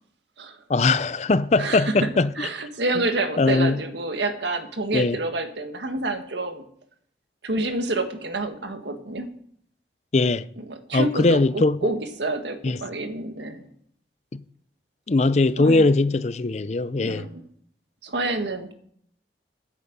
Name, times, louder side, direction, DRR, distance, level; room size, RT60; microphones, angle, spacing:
voice 1, 0.7-2.3 3.4-3.8 4.9-5.2 10.1-10.5 10.9-11.8 12.6-12.8 15.1-17.2, left 3 dB, 40° left, 0.5 m, -20 dB
voice 2, 1.6-1.9 2.3-6.6 7.4-9.3 10.6-13.7 15.6-15.9 17.0-17.4 18.0-18.7, right 2 dB, 80° right, 1.7 m, -28 dB
9.7 x 9.2 x 8.1 m
head